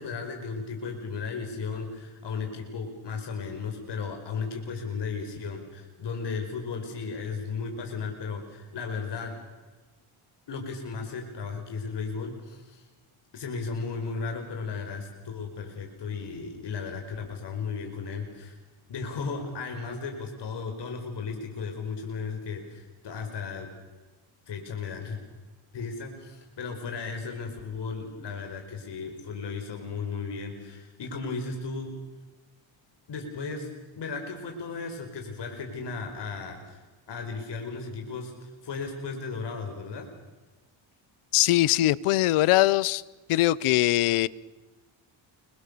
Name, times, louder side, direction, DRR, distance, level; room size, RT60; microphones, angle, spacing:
voice 1, 0.0-9.4 10.5-12.9 13.3-18.6 18.9-23.7 24.5-25.2 25.7-31.9 33.1-33.7 34.0-40.1, left 4 dB, 55° left, 5.2 m, -35 dB
voice 2, 41.3-43.0 43.3-44.3, left 16 dB, 85° left, 0.9 m, -21 dB
29.5 x 23.5 x 6.9 m
cardioid pair, 95°, 50 cm